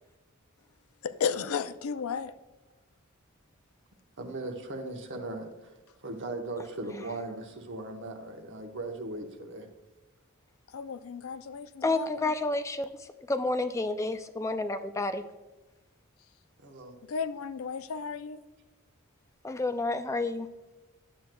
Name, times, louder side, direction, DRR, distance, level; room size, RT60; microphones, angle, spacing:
voice 1, 1.0-2.3 10.7-12.3 17.1-18.4, left 6 dB, 85° left, 0.4 m, -34 dB
voice 2, 4.2-5.7 6.0-9.7 16.6-17.0, right 2 dB, 60° right, 1.0 m, -38 dB
voice 3, 11.8-12.9 13.3-15.2 19.4-20.5, left 2 dB, 15° left, 0.3 m, -29 dB
10.0 x 7.7 x 2.2 m
head